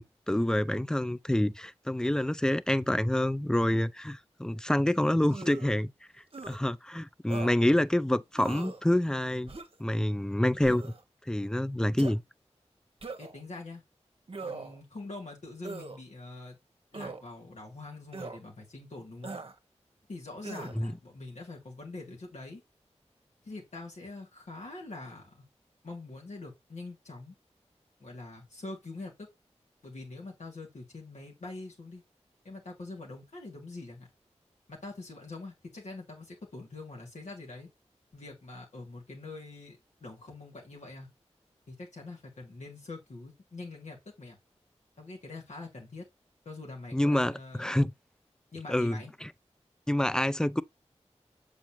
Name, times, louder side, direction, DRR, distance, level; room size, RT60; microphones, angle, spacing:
voice 1, 0.0-5.9 6.5-9.5 9.8-10.9 11.3-12.2 20.8-20.9 46.9-47.9 48.7-49.3 49.9-50.6, left 1 dB, 5° left, 0.4 m, -27 dB
sound 1, 5.3-5.7 6.3-6.6 7.3-7.5 8.3-8.8 9.5-9.8 10.6-11.0 12.0-12.1 13.0-13.4 14.3-14.8 15.6-16.0 16.9-17.2 18.1-18.4 19.2-19.5 20.4-20.8, right 3 dB, 50° right, 1.0 m, -41 dB
voice 2, 13.2-13.8 14.4-16.6 16.9-19.3 20.1-22.6 23.4-25.4 25.8-27.3 28.0-29.3 29.8-32.0 32.4-34.1 34.7-37.7 38.1-41.1 41.7-44.4 45.0-46.0 46.4-47.7 48.5-49.1, left 2 dB, 90° left, 2.9 m, -44 dB
7.1 x 5.0 x 3.1 m
cardioid pair, 45°, 12 cm